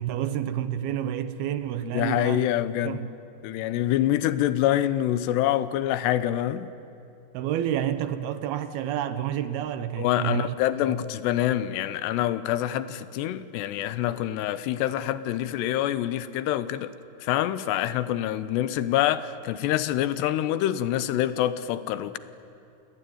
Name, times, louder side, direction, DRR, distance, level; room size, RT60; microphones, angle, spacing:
voice 1, 0.0-2.5 2.8-3.1 7.3-10.6 10.8-11.0, right 10 dB, 75° right, 2.7 m, -29 dB
voice 2, 1.8-3.0 3.4-6.7 10.0-16.9 17.2-22.2, left 12 dB, 90° left, 3.0 m, -26 dB
29.0 x 19.5 x 9.4 m
omnidirectional pair, 4.7 m